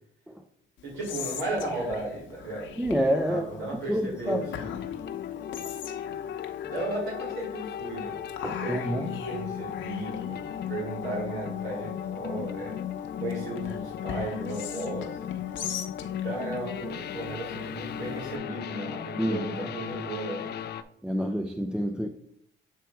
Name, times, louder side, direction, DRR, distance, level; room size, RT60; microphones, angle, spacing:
Whispering, 0.8-18.4, left 7 dB, 75° left, 0.9 m, -43 dB
voice 1, 0.8-2.7 3.2-4.6 6.6-8.2 8.6-12.8 13.2-15.2 15.6-15.7 16.2-20.6, right 2 dB, 90° right, 2.3 m, -35 dB
voice 2, 2.8-3.6 3.9-4.5 8.4-9.1 19.2-19.7 21.0-22.1, equal, 5° right, 0.4 m, -28 dB
sound 1, 4.2-20.8, left 10 dB, 55° left, 0.4 m, -36 dB
7.6 x 3.3 x 4.5 m
cardioid pair, 90°, 20 cm